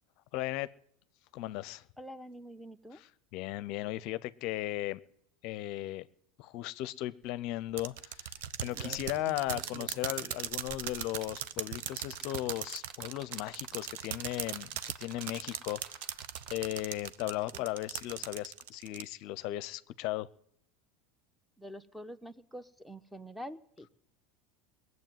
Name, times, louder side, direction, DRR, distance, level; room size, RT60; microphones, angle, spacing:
voice 1, 0.3-0.7 1.3-1.9 2.9-5.0 5.4-6.1 6.4-8.3 8.6-16.2 16.5-20.3, left 16 dB, 60° left, 17 dB, 0.6 m, -37 dB
voice 2, 2.0-3.0 21.6-23.9, equal, ahead, 15 dB, 1.0 m, -46 dB
sound 1, 7.2-7.3 7.6-7.9 8.4-16.9 18.1-18.2, right 6 dB, 45° right, 1.5 m, -49 dB
sound 2, 7.8-19.0, right 11 dB, 75° right, 0.8 m, -39 dB
19.5 x 7.9 x 9.2 m, 0.69 s
hypercardioid pair, 95°, 0 cm